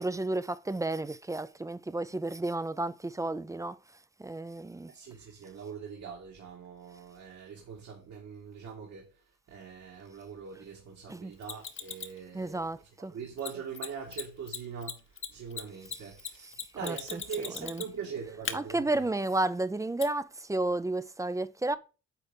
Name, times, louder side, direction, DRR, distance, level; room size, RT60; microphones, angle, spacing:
voice 1, 0.0-3.8 4.2-4.9 11.1-11.3 12.3-13.1 16.4-16.5 16.8-17.2 17.6-17.8 18.5-21.8, right 2 dB, 10° right, 0.4 m, -32 dB
voice 2, 4.9-9.1 9.5-12.7 13.0-15.0 15.3-16.5 16.7-19.0, right 6 dB, 65° right, 1.9 m, -42 dB
Mechanisms, 11.4-12.2 13.4-13.5 13.7-13.9 14.1-14.2 14.5-18.0 18.4-18.5 20.0-20.1, left 7 dB, 40° left, 1.0 m, -37 dB
8.1 x 4.2 x 3.8 m
cardioid pair, 90°, 30 cm